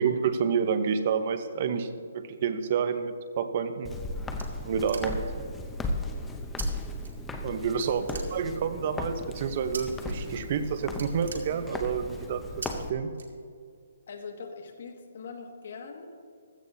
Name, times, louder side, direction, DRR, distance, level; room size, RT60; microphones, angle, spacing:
voice 1, 0.0-1.9 2.1-3.9 4.6-5.2 7.4-8.0 8.3-12.4 12.9-13.1, right 6 dB, 35° right, 9 dB, 0.9 m, -28 dB
Walk footsteps, 3.8-12.9, left 2 dB, 5° left, 0.7 m, -36 dB
sound 1, 4.4-5.4 6.6-6.7 7.0-7.5 7.8-8.8 9.7-10.1 10.5-10.6 10.9-12.0 12.6-12.7 13.1-13.8, right 4 dB, 90° right, 2.4 m, -42 dB
voice 2, 14.1-16.1, left 5 dB, 55° left, 3 dB, 1.8 m, -42 dB
15.5 x 13.5 x 2.7 m, 2.2 s
hypercardioid pair, 165°, 0 cm